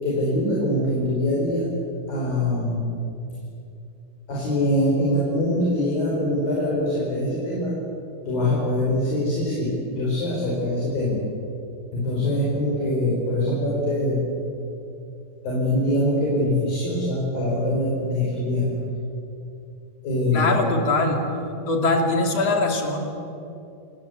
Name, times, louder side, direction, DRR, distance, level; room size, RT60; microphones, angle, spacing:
voice 1, 0.0-1.7 2.1-2.9 4.3-7.7 8.2-11.2 11.9-14.2 15.4-18.7 20.0-20.5, left 1 dB, 65° left, -5 dB, 6.8 m, -23 dB
voice 2, 20.3-21.2 21.7-23.0, left 3 dB, 45° left, 3 dB, 3.6 m, -22 dB
28.0 x 19.5 x 8.3 m, 2.7 s
omnidirectional pair, 4.4 m